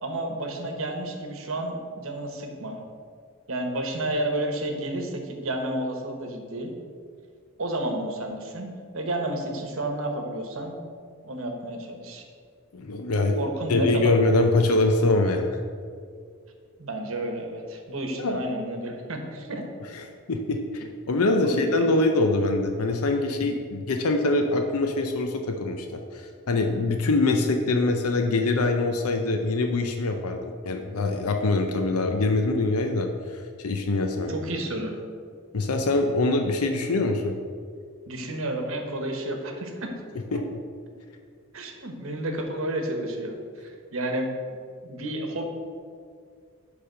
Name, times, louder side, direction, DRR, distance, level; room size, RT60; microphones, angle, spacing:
voice 1, 0.0-2.8 3.5-6.7 7.6-10.8 11.2-12.2 13.3-14.1 16.8-19.7 21.4-21.9 34.3-35.0 38.1-39.9 41.5-44.3 44.8-45.5, right 1 dB, 65° right, 4 dB, 1.1 m, -31 dB
voice 2, 12.7-15.6 18.2-18.4 19.9-34.3 35.5-37.4 40.3-40.4, left 2 dB, 85° left, 4 dB, 0.6 m, -24 dB
10.0 x 3.5 x 6.7 m, 2.1 s
head